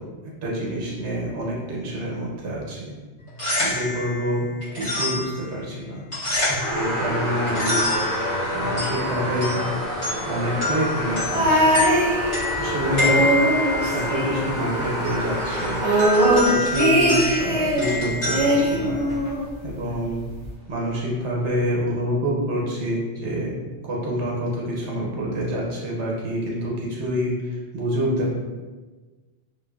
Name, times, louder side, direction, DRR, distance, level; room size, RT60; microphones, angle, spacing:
voice 1, 0.4-2.9 3.6-4.5 4.7-6.0 6.7-7.9 8.5-9.5 10.2-11.7 12.6-13.3 13.9-15.8 16.4-19.0 19.6-20.2 20.7-23.5 23.8-28.3, equal, 75° right, -3 dB, 1.0 m, -27 dB
sound 1, 3.2-19.4, left 2 dB, 30° left, 0.8 m, -29 dB
sound 2, 6.6-16.7 17.4-17.5 19.1-19.2 19.6-19.7 20.1-20.2 20.7-20.8, equal, 40° right, 0.9 m, -28 dB
sound 3, 11.3-12.6 12.9-14.8 15.1-15.2 15.5-17.9 18.3-19.6 20.4-20.5, right 1 dB, 60° right, 0.3 m, -21 dB
2.4 x 2.4 x 2.2 m, 1.3 s
omnidirectional pair, 1.2 m